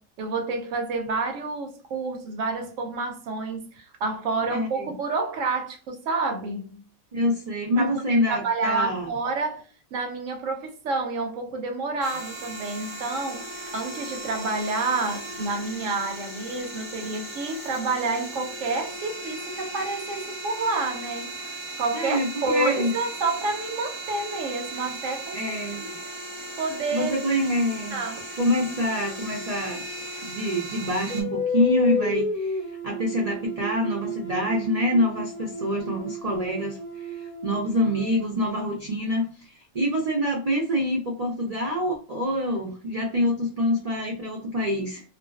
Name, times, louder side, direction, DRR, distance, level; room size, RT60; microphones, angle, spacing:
voice 1, 0.0-6.8 7.8-21.4 21.8-25.4 25.8-25.9 26.6-27.1 27.9-28.3, right 3 dB, 80° right, 1.0 m, -29 dB
voice 2, 4.5-4.9 7.1-9.1 21.9-22.9 25.3-25.8 26.9-28.0 28.4-29.8 30.2-32.6 32.8-37.2 37.4-39.3 39.7-45.0, left 1 dB, 45° right, 0.5 m, -26 dB
sound 1, 12.0-31.2, right 2 dB, 10° right, 0.8 m, -37 dB
sound 2, 31.1-38.4, left 1 dB, 50° left, 0.7 m, -31 dB
2.4 x 2.2 x 2.3 m
omnidirectional pair, 1.3 m